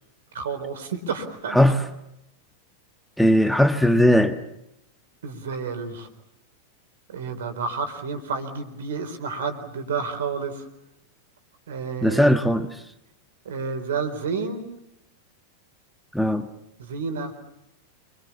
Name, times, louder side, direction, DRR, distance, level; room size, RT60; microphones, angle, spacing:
voice 1, 0.3-1.7 5.2-6.1 7.1-10.7 11.7-12.3 13.4-14.7 16.8-17.3, right 5 dB, 60° right, 8 dB, 4.1 m, -30 dB
voice 2, 3.2-4.4 12.0-12.7 16.1-16.5, equal, ahead, 8 dB, 1.5 m, -18 dB
28.5 x 24.0 x 7.2 m, 0.82 s
figure-of-eight pair, 90°, 0 cm